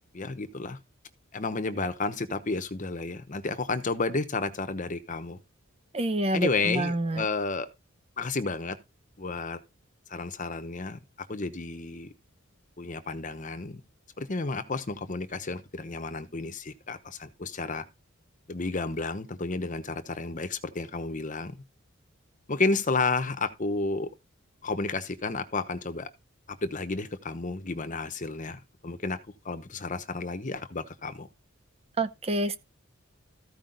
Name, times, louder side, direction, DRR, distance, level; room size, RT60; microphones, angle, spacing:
voice 1, 0.1-0.8 1.3-5.4 6.3-7.7 8.2-8.8 9.2-9.6 10.1-11.0 11.3-12.1 12.8-13.8 14.2-17.8 18.5-21.6 22.5-24.1 24.6-26.1 26.5-29.2 29.4-31.3, left 3 dB, 40° left, 0.9 m, -31 dB
voice 2, 5.9-7.2 32.0-32.6, right 2 dB, 30° right, 0.7 m, -27 dB
14.5 x 5.0 x 3.9 m
head